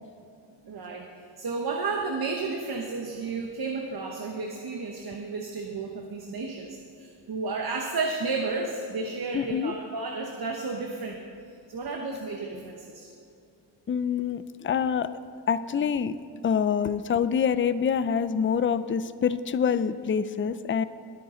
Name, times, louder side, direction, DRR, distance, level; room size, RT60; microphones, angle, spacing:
voice 1, 0.6-1.1 1.4-11.2 11.7-13.1, right 3 dB, 50° right, 2 dB, 1.2 m, -32 dB
voice 2, 9.3-9.7 13.9-15.1 15.5-16.2 16.4-20.8, left 7 dB, 30° left, 14 dB, 0.4 m, -26 dB
20.5 x 9.2 x 3.9 m, 2.6 s
cardioid pair, 100°, 45 cm